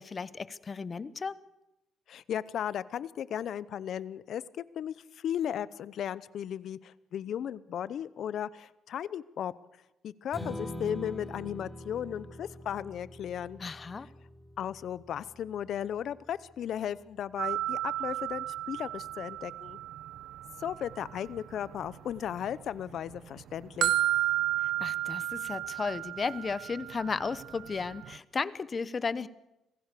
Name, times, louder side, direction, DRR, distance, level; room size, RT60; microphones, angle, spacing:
voice 1, 0.0-1.4 13.6-14.1 24.8-29.3, left 5 dB, 35° left, 17 dB, 0.9 m, -34 dB
voice 2, 2.1-9.5 10.0-13.6 14.6-19.8 20.6-23.9, left 9 dB, 70° left, 19 dB, 0.7 m, -36 dB
Strum, 10.3-16.6, equal, 5° left, 4.6 m, -44 dB
sound 1, 17.4-22.5 22.8-28.2, right 13 dB, 75° right, 0.8 m, -33 dB
26.0 x 16.5 x 6.8 m, 0.95 s
cardioid pair, 90°, 0 cm